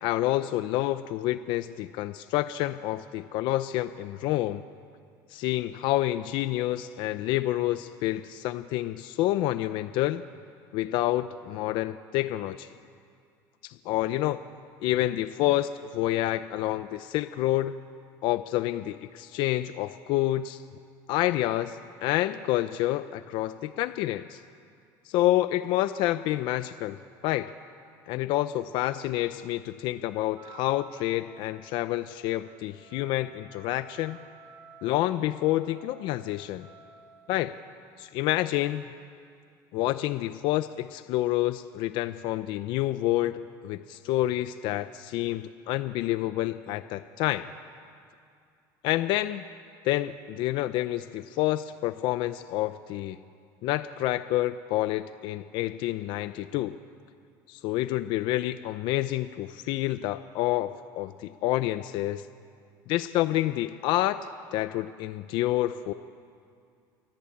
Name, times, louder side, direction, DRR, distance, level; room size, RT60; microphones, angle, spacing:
voice 1, 0.0-4.6 5.3-10.2 10.7-12.7 13.6-14.4 14.8-17.7 18.2-20.6 21.1-24.4 25.0-27.0 27.2-27.5 28.1-34.2 34.8-36.7 37.3-37.5 38.0-38.9 39.7-47.5 48.8-49.4 49.8-53.2 53.6-56.8 57.5-62.3 62.9-64.2 64.5-65.9, left 15 dB, 65° left, 12 dB, 0.7 m, -28 dB
Wind instrument woodwind instrument, 30.3-37.1, right 5 dB, 45° right, 4.9 m, -53 dB
28.5 x 21.5 x 8.7 m, 2.3 s
cardioid pair, 130°, 9 cm